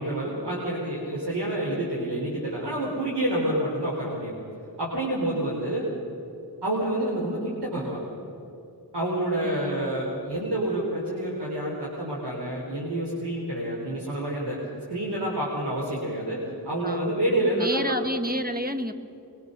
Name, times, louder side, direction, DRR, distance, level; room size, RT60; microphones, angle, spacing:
voice 1, 0.0-4.3 4.8-5.8 6.6-8.0 8.9-17.8, right 1 dB, 75° right, -4 dB, 4.0 m, -28 dB
voice 2, 9.4-9.9 16.8-17.2 17.6-18.9, equal, 20° right, 7 dB, 1.4 m, -30 dB
23.0 x 22.5 x 6.7 m, 2.8 s
wide cardioid pair, 70°, 41 cm